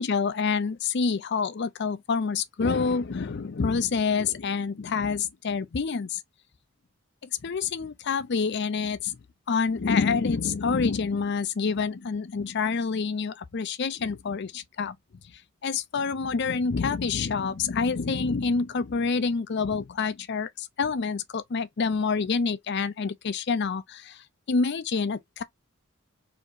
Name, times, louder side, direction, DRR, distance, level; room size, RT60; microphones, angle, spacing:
voice 1, 0.0-6.2 7.2-9.2 9.5-15.0 15.6-25.4, left 5 dB, 50° left, 0.5 m, -27 dB
4.3 x 2.9 x 2.5 m
head